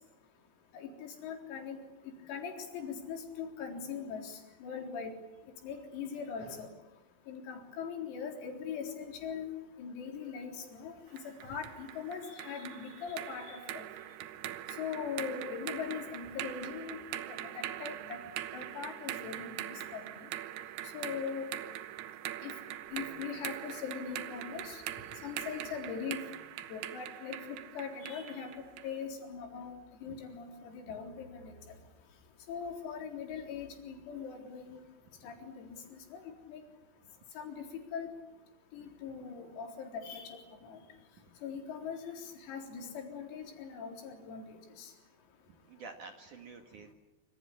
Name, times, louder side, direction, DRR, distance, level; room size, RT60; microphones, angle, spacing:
voice 1, 0.7-1.8 2.3-5.1 5.6-6.7 7.3-9.5 9.8-11.0 11.4-13.9 14.8-17.0 17.3-18.2 18.5-19.6 19.9-20.0 20.9-21.5 22.4-22.5 22.9-24.8 25.2-26.2 26.7-28.5 28.8-29.8 30.0-31.5 32.5-34.8 35.2-36.2 36.5-36.6 37.4-37.6 37.9-38.1 38.7-40.4 40.7-40.8 41.4-44.9, left 6 dB, 90° left, 2 dB, 6.6 m, -41 dB
sound 1, 11.2-29.0, right 13 dB, 75° right, 2.4 m, -42 dB
voice 2, 45.7-46.9, right 4 dB, 55° right, 4 dB, 2.3 m, -49 dB
26.0 x 26.0 x 8.6 m, 0.98 s
omnidirectional pair, 6.0 m